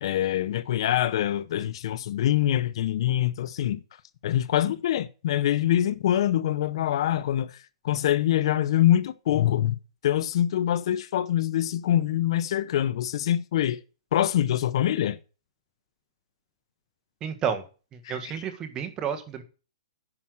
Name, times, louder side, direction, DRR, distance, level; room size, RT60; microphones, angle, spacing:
voice 1, 0.0-3.8 4.2-9.7 10.0-13.8 14.1-15.2 18.0-18.3, left 12 dB, 60° left, 0.8 m, -24 dB
voice 2, 17.2-17.6 17.9-19.4, right 7 dB, 20° right, 1.7 m, -31 dB
9.9 x 5.8 x 6.4 m
hypercardioid pair, 150°, 3 cm